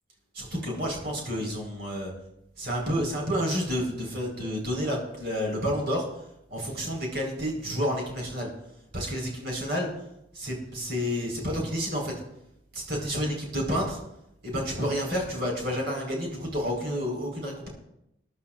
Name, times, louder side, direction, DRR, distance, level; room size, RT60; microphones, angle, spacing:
voice 1, 0.3-2.1 2.6-6.0 6.5-8.5 8.9-9.9 10.3-12.1 12.7-14.0 14.4-17.7, equal, 55° right, 0 dB, 4.8 m, -30 dB
22.0 x 11.5 x 2.6 m, 0.82 s
head